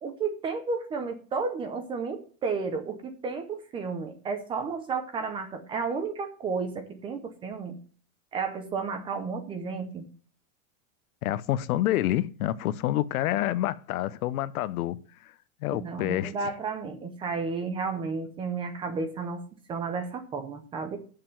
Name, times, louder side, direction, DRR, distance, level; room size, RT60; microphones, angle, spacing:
voice 1, 0.0-7.8 8.3-10.0 15.7-19.4 19.7-21.0, right 4 dB, 10° right, 0.6 m, -32 dB
voice 2, 11.2-15.0 15.2-15.3 15.6-16.3, left 14 dB, 75° left, 0.8 m, -28 dB
7.5 x 6.8 x 7.7 m
supercardioid pair, 175°, 43 cm